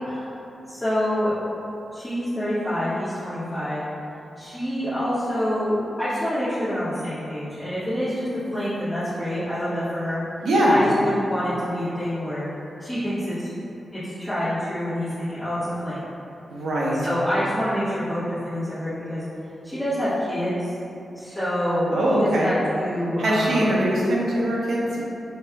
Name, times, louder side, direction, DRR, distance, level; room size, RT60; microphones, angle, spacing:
voice 1, 0.0-0.4 0.7-1.3 1.9-3.8 4.4-10.2 10.7-12.5 12.8-13.5 13.9-16.1 17.0-19.2 19.6-20.5 21.1-23.7, equal, 5° left, -17 dB, 1.2 m, -27 dB
voice 2, 10.4-10.8 16.5-17.0 21.3-21.4 21.9-22.5 23.2-25.0, equal, 90° right, -5 dB, 0.8 m, -21 dB
5.6 x 3.3 x 2.2 m, 2.9 s
wide cardioid pair, 130°, 0 cm